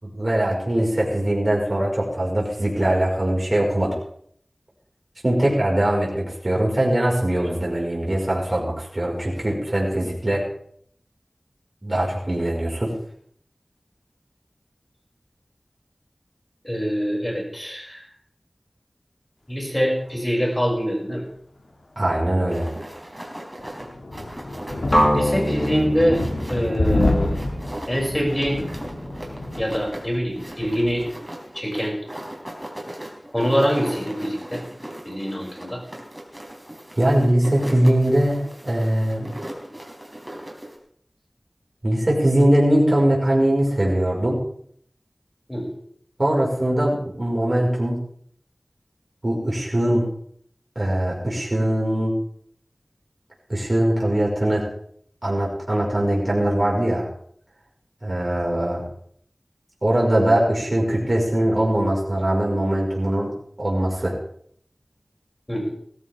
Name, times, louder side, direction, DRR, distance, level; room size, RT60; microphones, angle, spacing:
voice 1, 0.0-3.9 5.2-10.4 11.8-12.9 22.0-22.7 37.0-39.3 41.8-44.4 46.2-48.0 49.2-50.1 50.8-52.1 53.5-54.7 55.2-57.1 58.0-58.8 59.8-64.1, right 1 dB, 40° right, -3 dB, 5.3 m, -21 dB
voice 2, 16.6-18.1 19.5-21.2 25.1-26.2 26.5-27.4 27.9-28.6 29.6-31.1 31.5-32.0 33.3-34.6 35.0-35.8 45.5-45.7 65.5-65.7, equal, 20° left, -1 dB, 6.7 m, -24 dB
sound 1, 22.5-40.8, right 1 dB, 15° right, 3.9 m, -38 dB
sound 2, 23.6-31.1, left 2 dB, 80° left, 2.4 m, -28 dB
sound 3, 24.9-28.9, equal, 40° left, 6.0 m, -25 dB
19.0 x 14.0 x 3.6 m, 0.63 s
wide cardioid pair, 50°, 0 cm